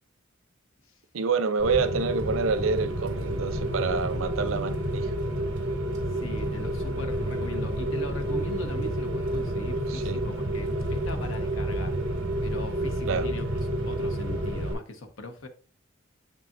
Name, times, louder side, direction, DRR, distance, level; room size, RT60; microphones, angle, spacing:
voice 1, 1.1-5.1 9.9-10.2 13.1-13.3, right 4 dB, 85° right, 0.6 m, -28 dB
Rain, 1.6-14.7, right 1 dB, 60° right, 2.1 m, -29 dB
voice 2, 6.2-12.0 12.4-13.4 13.8-15.5, left 2 dB, 80° left, 1.1 m, -40 dB
7.7 x 5.6 x 2.5 m
head